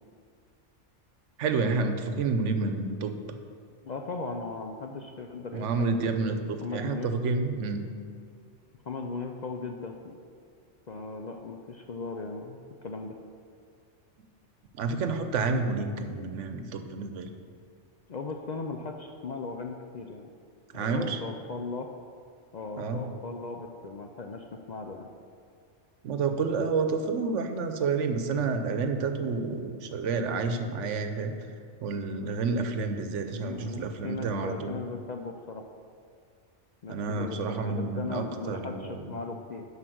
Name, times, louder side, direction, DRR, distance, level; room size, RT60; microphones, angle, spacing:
voice 1, 1.4-3.1 5.5-7.9 14.7-17.3 20.7-21.2 22.8-23.0 26.0-31.4 31.8-34.8 36.9-39.1, right 4 dB, 85° right, 7 dB, 1.1 m, -29 dB
voice 2, 3.8-5.7 6.2-6.3 6.6-7.1 8.9-10.2 10.9-13.2 18.1-20.3 20.7-21.9 22.5-25.1 33.4-35.6 36.8-39.7, left 4 dB, 55° left, 3 dB, 0.5 m, -38 dB
7.8 x 5.7 x 6.2 m, 2.2 s
omnidirectional pair, 1.2 m